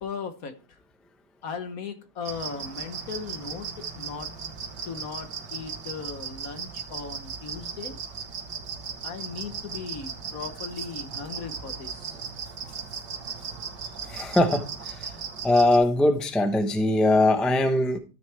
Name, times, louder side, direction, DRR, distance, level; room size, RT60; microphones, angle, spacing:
voice 1, 0.0-0.8 1.4-4.3 4.8-8.0 9.0-12.2, left 5 dB, 60° left, 8 dB, 1.4 m, -37 dB
sound 1, 2.2-15.8, right 6 dB, 80° right, 1.9 m, -37 dB
voice 2, 14.0-15.1 15.4-18.0, left 2 dB, ahead, 6 dB, 0.7 m, -21 dB
13.5 x 6.4 x 3.4 m, 0.34 s
omnidirectional pair, 1.8 m